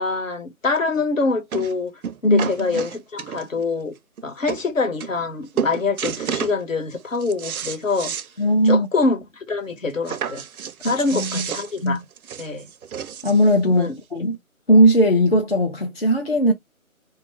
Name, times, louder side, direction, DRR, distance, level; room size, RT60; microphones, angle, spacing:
voice 1, 0.0-1.9 2.2-3.9 4.2-8.1 8.6-10.4 10.8-12.0 12.4-12.7 13.7-13.9, left 4 dB, 65° left, 1.1 m, -25 dB
sound 1, 0.8-0.9 1.5-1.8 2.0-3.6 4.2-4.3 4.5-4.6 5.0-5.3 5.6-6.6 7.0-8.3 8.7-8.8 9.1-9.2 10.1-13.5 14.3-14.4, right 8 dB, 90° right, 0.5 m, -31 dB
voice 2, 2.2-2.8 8.4-8.9 10.8-11.5 11.8-12.0 13.2-14.4 14.7-16.5, equal, 45° left, 0.5 m, -18 dB
2.3 x 2.2 x 3.0 m
figure-of-eight pair, 170°, 42 cm